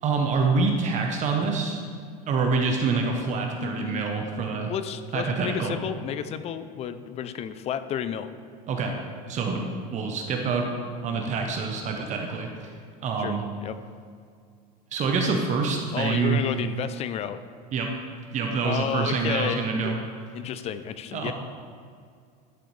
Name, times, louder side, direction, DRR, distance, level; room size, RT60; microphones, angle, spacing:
voice 1, 0.0-1.8 2.3-4.7 5.1-5.7 8.7-8.9 9.3-9.6 9.9-10.7 11.0-12.7 13.0-13.4 14.9-16.4 17.7-17.9 18.3-20.0 21.1-21.3, right 4 dB, 35° right, 2 dB, 0.8 m, -26 dB
voice 2, 3.5-4.0 4.7-8.3 13.2-13.7 15.9-17.4 18.6-20.0 20.3-21.3, left 9 dB, 30° left, 12 dB, 0.4 m, -32 dB
11.5 x 6.9 x 3.2 m, 2.2 s
supercardioid pair, 135°, 20 cm